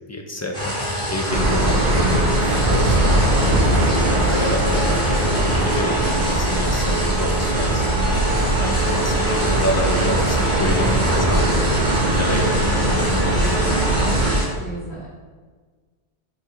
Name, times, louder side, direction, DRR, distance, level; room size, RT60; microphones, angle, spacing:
voice 1, 0.1-3.1 3.4-8.2 8.6-11.7 12.0-13.3, left 1 dB, 20° left, 1 dB, 0.4 m, -29 dB
sound 1, 0.5-14.4, equal, 5° left, 1.7 m, -26 dB
sound 2, 1.3-14.3, right 1 dB, 45° right, 0.9 m, -20 dB
voice 2, 12.6-15.1, right 1 dB, 60° left, -9 dB, 2.2 m, -33 dB
6.1 x 4.7 x 3.9 m, 1.5 s
omnidirectional pair, 1.2 m